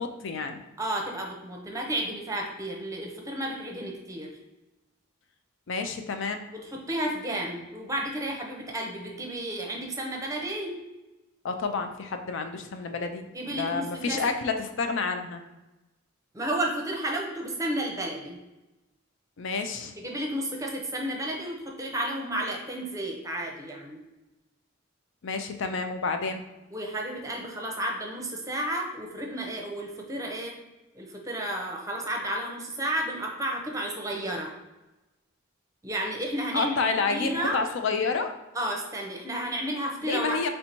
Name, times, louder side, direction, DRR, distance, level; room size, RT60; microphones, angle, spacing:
voice 1, 0.0-0.6 5.7-6.4 11.4-15.4 19.4-19.9 25.2-26.4 36.5-38.3 40.0-40.5, left 4 dB, 65° left, 7 dB, 0.5 m, -29 dB
voice 2, 0.8-4.3 6.6-10.8 13.3-14.2 16.3-18.4 20.0-24.0 26.7-30.5 30.9-34.5 35.8-36.8 37.1-37.6 38.5-40.4, right 1 dB, 15° right, 0 dB, 0.6 m, -32 dB
3.3 x 2.7 x 4.4 m, 1.0 s
head